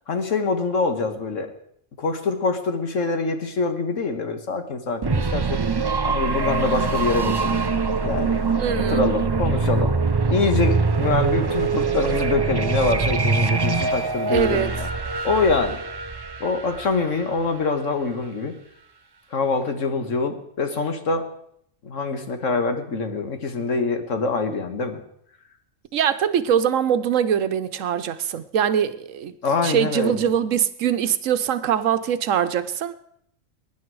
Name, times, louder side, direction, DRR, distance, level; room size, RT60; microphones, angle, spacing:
voice 1, 0.1-1.5 2.0-5.6 6.0-7.6 8.0-8.4 8.8-10.0 10.3-14.9 15.2-15.8 16.4-18.5 19.3-21.3 21.8-25.0 29.4-30.3, left 4 dB, 75° left, 7 dB, 1.8 m, -25 dB
sound 1, 5.0-17.7, right 4 dB, 35° right, 0.3 m, -23 dB
voice 2, 8.6-9.0 14.3-14.7 25.9-29.3 29.6-32.9, right 9 dB, 80° right, 11 dB, 1.2 m, -22 dB
22.0 x 10.5 x 4.7 m, 0.71 s
omnidirectional pair, 1.3 m